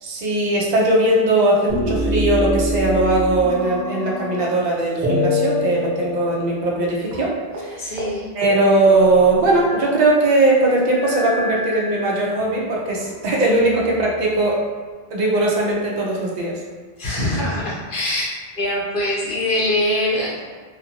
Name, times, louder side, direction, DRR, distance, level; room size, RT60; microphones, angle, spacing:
voice 1, 0.0-7.3 7.6-7.9 8.4-14.6 15.1-16.6, right 2 dB, 50° right, -3 dB, 0.6 m, -19 dB
sound 1, 1.7-4.6 5.0-6.8 7.1-7.2 7.5-7.7 8.0-8.1 8.4-10.1 10.9-12.5 13.2-14.1, left 1 dB, 85° right, 0.9 m, -26 dB
voice 2, 7.8-8.3 17.0-18.3 18.6-20.4, left 1 dB, 60° left, -6 dB, 0.9 m, -23 dB
2.5 x 2.4 x 2.7 m, 1.5 s
omnidirectional pair, 1.0 m